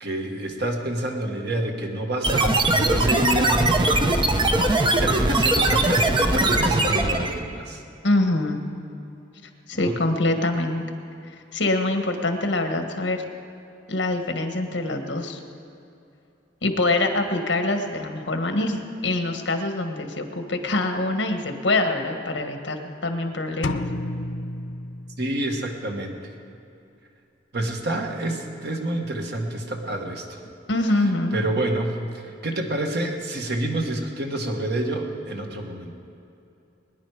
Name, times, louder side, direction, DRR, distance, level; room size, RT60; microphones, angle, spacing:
voice 1, 0.0-4.5 4.8-7.8 9.7-10.0 25.2-26.3 27.5-30.4 31.3-35.9, right 1 dB, 60° right, 2 dB, 1.5 m, -28 dB
sound 1, 2.2-7.4, right 2 dB, 25° right, 0.9 m, -20 dB
voice 2, 8.0-8.6 9.7-10.8 11.5-13.3 13.9-15.4 16.6-23.8 30.7-31.4, left 2 dB, 70° left, 5 dB, 1.5 m, -24 dB
sound 2, 23.6-25.6, left 2 dB, 85° left, 0.7 m, -31 dB
21.5 x 10.5 x 4.9 m, 2.7 s
head